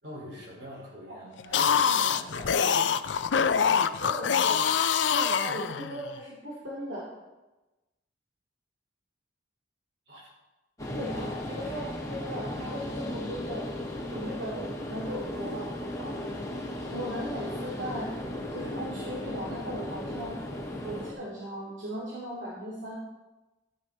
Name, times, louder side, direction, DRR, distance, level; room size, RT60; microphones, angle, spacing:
voice 1, 0.0-2.6 10.1-10.3 11.1-11.3, equal, 65° right, -4 dB, 4.8 m, -44 dB
sound 1, 1.4-6.1, left 7 dB, 80° left, 0.5 m, -25 dB
voice 2, 3.8-4.6 5.1-7.1 10.9-11.1 11.5-13.7 14.1-15.7 16.0-16.1 16.9-18.1 18.5-20.4 20.8-22.9, equal, 90° right, -6 dB, 2.7 m, -37 dB
sound 2, 10.8-21.1, left 1 dB, 20° left, 1.7 m, -36 dB
13.0 x 9.8 x 4.2 m, 1.1 s
head